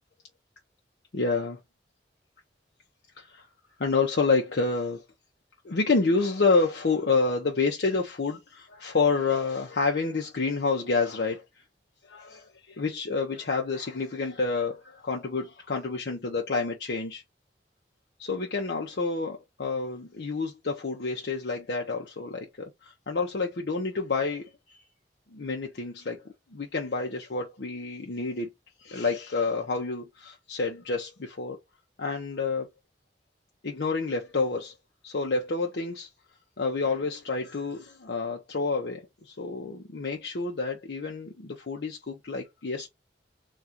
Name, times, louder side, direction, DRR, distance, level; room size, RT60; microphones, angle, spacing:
voice 1, 1.1-1.6 3.2-3.5 3.8-5.0 5.6-11.4 12.1-17.2 18.2-24.8 25.3-26.2 26.5-28.5 28.8-31.6 32.0-32.7 33.6-34.7 35.0-36.1 36.6-42.9, left 4 dB, 65° left, 0.7 m, -29 dB
3.7 x 2.4 x 4.2 m
head